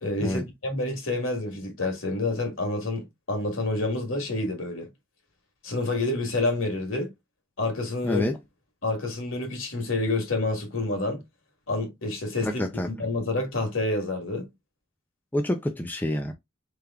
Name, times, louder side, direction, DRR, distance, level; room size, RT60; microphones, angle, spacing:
voice 1, 0.0-4.9 5.6-7.1 7.6-8.3 8.8-11.2 11.7-12.6 12.9-14.5, left 2 dB, 65° left, 1.7 m, -28 dB
voice 2, 8.0-8.4 12.4-12.9 15.3-16.3, left 1 dB, 10° left, 0.4 m, -27 dB
3.4 x 3.4 x 3.5 m
head